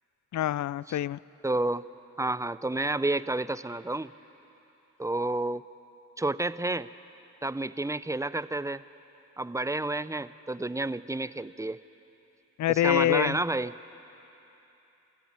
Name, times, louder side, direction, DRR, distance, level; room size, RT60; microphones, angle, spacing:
voice 1, 0.3-1.2 12.6-13.4, left 13 dB, 65° left, 21 dB, 0.5 m, -25 dB
voice 2, 1.4-1.8 2.2-4.1 5.0-5.6 6.2-6.9 7.4-8.8 9.4-11.8 12.7-13.7, right 2 dB, 10° right, 16 dB, 0.6 m, -30 dB
27.5 x 14.0 x 8.8 m, 3.0 s
supercardioid pair, 45°, 32 cm